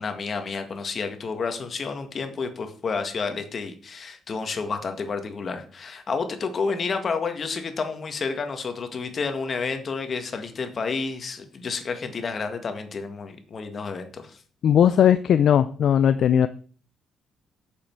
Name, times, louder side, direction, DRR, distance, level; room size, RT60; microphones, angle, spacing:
voice 1, 0.0-14.4, left 4 dB, 45° left, 7 dB, 1.7 m, -30 dB
voice 2, 14.6-16.5, left 9 dB, 65° left, 12 dB, 0.4 m, -18 dB
8.5 x 7.0 x 4.7 m, 0.43 s
cardioid pair, 90°, 0 cm